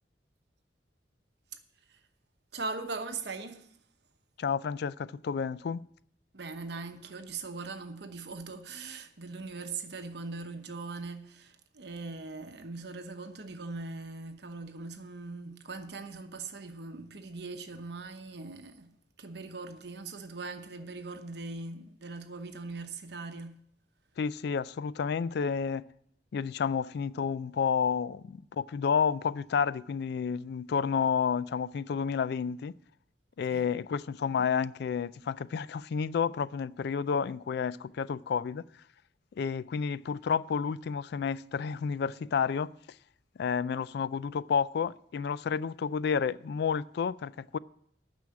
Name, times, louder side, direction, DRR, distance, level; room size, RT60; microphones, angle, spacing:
voice 1, 2.5-3.7 6.3-23.6 33.5-33.7, right 3 dB, 65° right, 1.0 m, -40 dB
voice 2, 4.4-5.8 24.2-25.9 26.3-32.7 33.4-38.6 39.4-42.7 43.4-47.6, left 6 dB, 65° left, 0.3 m, -30 dB
9.3 x 6.2 x 8.6 m
head